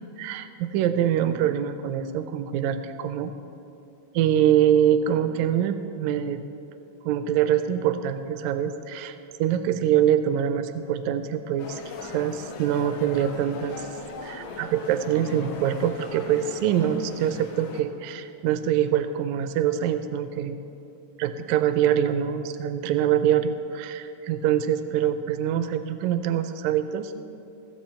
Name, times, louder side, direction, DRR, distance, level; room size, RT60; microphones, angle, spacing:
voice 1, 0.2-3.3 4.1-6.4 7.1-13.9 14.2-20.6 21.2-27.2, right 10 dB, 80° right, 10 dB, 1.8 m, -24 dB
sound 1, 11.6-17.8, left 4 dB, 85° left, 1.1 m, -39 dB
16.0 x 7.5 x 4.3 m, 2.7 s
omnidirectional pair, 3.5 m